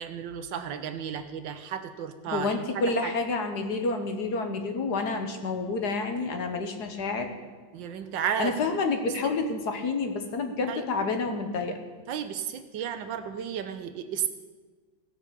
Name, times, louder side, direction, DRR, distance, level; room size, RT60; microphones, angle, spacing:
voice 1, 0.0-2.6 3.0-3.1 7.7-8.6 10.7-10.8 12.1-14.3, right 8 dB, 75° right, 9 dB, 1.4 m, -33 dB
voice 2, 2.3-7.3 8.4-11.8, left 3 dB, 60° left, 5 dB, 1.5 m, -29 dB
17.0 x 6.0 x 6.8 m, 1.4 s
omnidirectional pair, 2.1 m